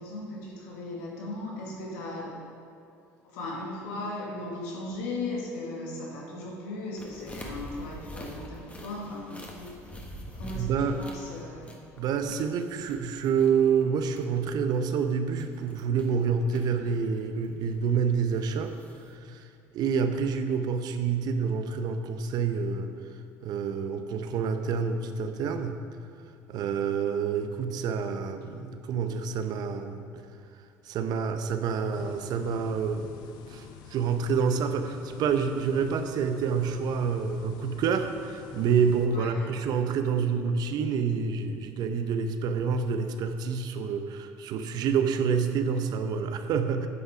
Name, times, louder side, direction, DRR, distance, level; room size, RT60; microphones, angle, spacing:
voice 1, 0.0-2.4 3.2-9.7 10.4-11.7 39.1-39.5, left 2 dB, 85° left, -2 dB, 1.8 m, -37 dB
sound 1, 7.0-19.1, equal, 15° left, 1.3 m, -45 dB
voice 2, 10.5-11.0 12.0-18.7 19.1-19.5 19.7-22.9 23.4-25.8 26.5-30.3 30.8-33.1 33.5-46.9, right 6 dB, 60° right, 8 dB, 0.7 m, -28 dB
sound 2, 31.9-39.1, left 7 dB, 70° left, 0.6 m, -48 dB
9.6 x 5.6 x 4.8 m, 2.4 s
supercardioid pair, 80°, 8 cm